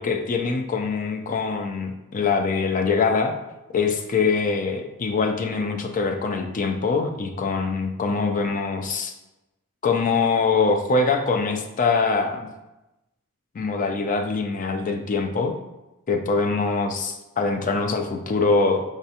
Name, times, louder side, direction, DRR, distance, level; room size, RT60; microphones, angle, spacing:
voice 1, 0.0-3.3 3.7-9.1 9.8-12.5 13.5-15.5 16.1-18.8, left 4 dB, 35° left, 4 dB, 0.4 m, -23 dB
4.9 x 2.3 x 2.7 m, 0.97 s
head